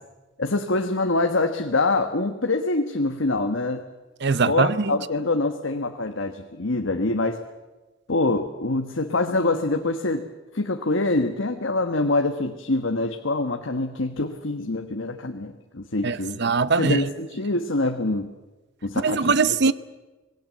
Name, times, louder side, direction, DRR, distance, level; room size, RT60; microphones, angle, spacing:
voice 1, 0.4-3.8 4.3-7.4 8.1-10.2 10.5-16.4 16.8-18.3 18.8-19.3, left 2 dB, 70° left, 1.4 m, -25 dB
voice 2, 4.2-4.9 16.0-17.0 19.0-19.7, right 4 dB, 55° right, 0.8 m, -21 dB
26.0 x 20.5 x 7.6 m
head